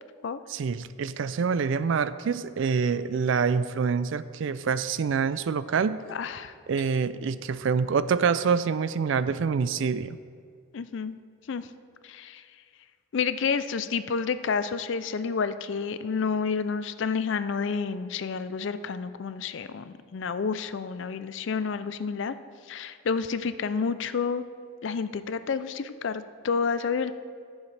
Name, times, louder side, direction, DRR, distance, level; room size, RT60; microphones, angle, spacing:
voice 1, 0.5-6.0 6.7-10.2, right 5 dB, 60° right, 15 dB, 0.3 m, -26 dB
voice 2, 6.1-6.5 10.7-11.2 11.5-11.7 12.0-12.4 13.1-22.3 22.7-24.5 24.8-27.1, left 5 dB, 60° left, 12 dB, 0.4 m, -29 dB
14.5 x 7.1 x 3.3 m, 2.2 s
head